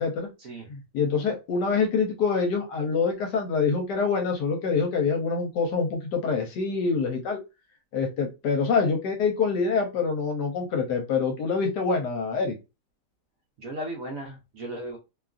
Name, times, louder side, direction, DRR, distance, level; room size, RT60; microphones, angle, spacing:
voice 1, 0.7-7.4 7.9-12.6, left 5 dB, 70° left, 3 dB, 1.2 m, -25 dB
voice 2, 13.6-15.0, right 1 dB, 65° right, 1 dB, 0.9 m, -36 dB
2.9 x 2.3 x 2.4 m, 0.26 s
omnidirectional pair, 1.9 m